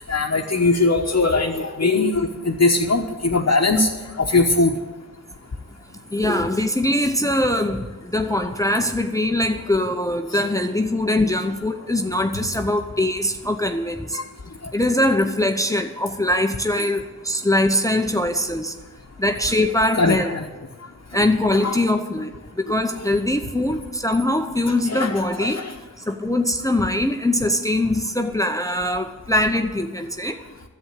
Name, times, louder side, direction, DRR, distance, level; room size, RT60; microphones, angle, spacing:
voice 1, 0.1-3.9 4.2-4.7 10.3-10.4 14.1-14.2 20.0-20.5 21.6-21.8 23.0-23.1 24.9-25.7, left 3 dB, 45° left, -1 dB, 1.1 m, -20 dB
voice 2, 6.1-14.2 14.7-18.7 19.2-20.4 21.1-25.6 26.1-30.4, left 1 dB, 10° left, 6 dB, 0.8 m, -22 dB
10.5 x 7.8 x 8.5 m, 1.3 s
cardioid pair, 40°, 34 cm